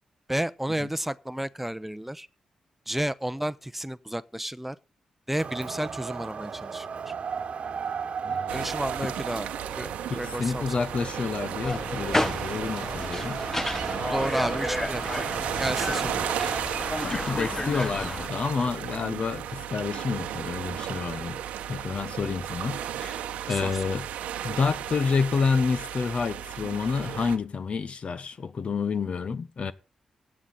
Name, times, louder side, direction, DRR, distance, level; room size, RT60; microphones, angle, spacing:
voice 1, 0.3-2.3 2.9-4.8 5.3-7.1 8.5-9.5 9.8-10.9 14.1-15.3 15.6-16.1 23.5-23.8, right 1 dB, 5° right, 0.7 m, -32 dB
Wind, 5.4-16.6, right 6 dB, 60° right, 1.2 m, -36 dB
voice 2, 8.2-8.7 9.0-9.1 10.1-13.4 17.0-21.4 21.7-24.1 24.4-29.7, left 5 dB, 55° left, 0.8 m, -29 dB
sound 1, 8.5-27.4, right 10 dB, 80° right, 0.9 m, -34 dB
sound 2, 11.6-18.3, left 1 dB, 15° left, 1.0 m, -31 dB
16.5 x 8.6 x 4.1 m
hypercardioid pair, 40°, 2 cm